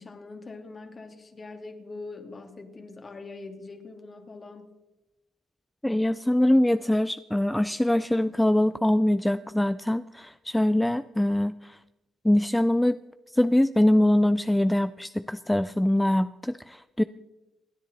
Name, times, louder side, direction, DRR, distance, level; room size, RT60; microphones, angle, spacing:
voice 1, 0.0-4.7, left 3 dB, 35° left, 5 dB, 2.4 m, -43 dB
voice 2, 5.8-11.8 12.2-13.0 13.3-17.0, left 1 dB, 5° left, 13 dB, 0.4 m, -23 dB
26.5 x 9.9 x 4.2 m, 1.0 s
cardioid pair, 90°, 0 cm